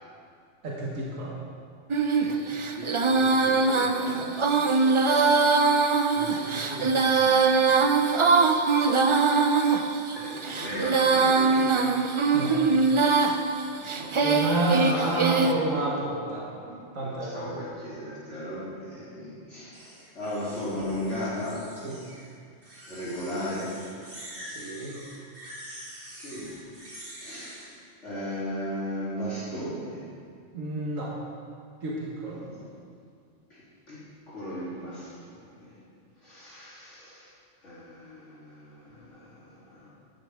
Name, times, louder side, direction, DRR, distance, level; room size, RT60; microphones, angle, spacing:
voice 1, 0.6-1.3 12.3-12.6 14.2-16.5 17.0-17.4 21.8-22.0 24.4-25.0 30.5-31.1 31.8-32.4, right 2 dB, 90° right, -4 dB, 1.9 m, -29 dB
Female singing, 1.9-15.5, right 4 dB, 40° right, 0.4 m, -22 dB
voice 2, 2.2-5.5 6.1-7.8 8.1-8.4 10.1-11.9 13.7-14.4 14.7-15.3 16.7-21.6 22.9-23.7 26.0-26.6 27.2-27.7 28.0-30.0 32.3-32.6 33.9-34.0 34.3-35.8 36.2-37.3 37.6-39.9, left 1 dB, 65° left, -11 dB, 3.5 m, -37 dB
sound 1, 19.7-22.3 22.6-27.7, equal, 55° right, 3.7 m, -45 dB
14.5 x 11.5 x 3.6 m, 2.2 s
omnidirectional pair, 1.3 m